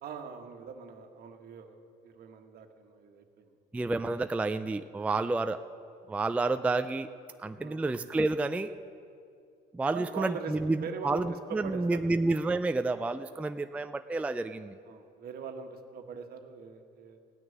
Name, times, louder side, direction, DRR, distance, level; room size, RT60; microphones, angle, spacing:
voice 1, 0.0-3.5 5.1-5.4 7.6-7.8 9.9-12.1 14.8-17.2, right 6 dB, 65° right, 5 dB, 1.4 m, -42 dB
voice 2, 3.7-5.6 6.1-7.1 7.4-8.7 9.7-14.8, right 2 dB, 10° right, 9 dB, 0.3 m, -30 dB
17.0 x 6.4 x 9.1 m, 2.5 s
cardioid pair, 110°, 17 cm